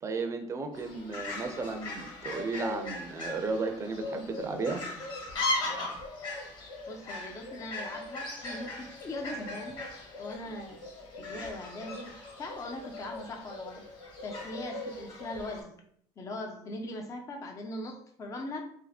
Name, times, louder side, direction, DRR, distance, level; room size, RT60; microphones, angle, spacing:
voice 1, 0.0-4.8, right 3 dB, 25° right, 6 dB, 0.5 m, -34 dB
Fowl, 0.7-15.6, left 2 dB, 45° left, 1.3 m, -38 dB
voice 2, 6.9-9.8 10.2-10.8 11.2-13.9 14.2-15.8 16.2-18.6, left 2 dB, 30° left, 3 dB, 0.4 m, -40 dB
2.8 x 2.5 x 4.0 m, 0.66 s
cardioid pair, 135°, 11 cm